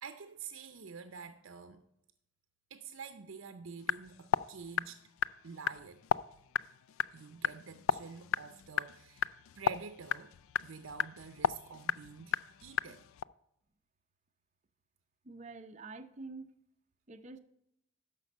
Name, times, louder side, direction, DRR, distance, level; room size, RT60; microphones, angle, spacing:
voice 1, 0.0-1.8 2.7-5.0 5.4-6.0 7.1-10.4 10.6-13.1, right 5 dB, 75° right, 0.6 m, -48 dB
sound 1, 3.8-13.2, left 9 dB, 85° left, 0.3 m, -36 dB
voice 2, 15.2-16.5 17.1-17.4, right 3 dB, 35° right, 0.6 m, -47 dB
12.5 x 5.3 x 5.3 m
head